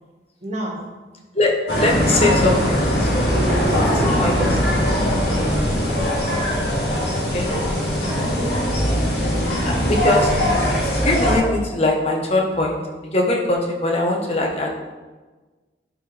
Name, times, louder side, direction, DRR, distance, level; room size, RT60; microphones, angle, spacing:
voice 1, 0.4-0.8 2.0-2.8 3.3-4.7 6.3-6.6, right 1 dB, 40° right, -1 dB, 1.5 m, -29 dB
voice 2, 1.3-2.6 3.0-3.3 4.2-4.5 7.3-7.5 9.6-10.3 10.7-14.7, left 2 dB, 35° left, 0 dB, 1.1 m, -21 dB
sound 1, 1.7-11.4, equal, 60° left, 2.3 m, -20 dB
11.0 x 5.0 x 3.3 m, 1.3 s
head